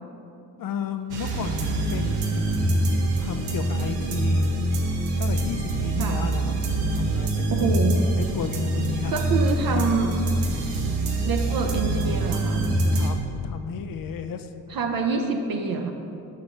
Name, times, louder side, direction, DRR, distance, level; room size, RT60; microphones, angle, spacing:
voice 1, 0.6-2.5 3.2-4.5 5.2-7.7 8.2-9.2 12.9-13.2 13.4-14.5, left 7 dB, 45° left, 8 dB, 0.5 m, -33 dB
sound 1, 1.1-13.1, right 2 dB, 85° right, 0.9 m, -25 dB
voice 2, 6.0-6.3 7.5-8.1 9.1-10.2 11.3-12.7 14.7-15.9, right 4 dB, 45° right, 3 dB, 0.7 m, -26 dB
5.9 x 5.8 x 3.3 m, 2.7 s
hypercardioid pair, 40°, 50 cm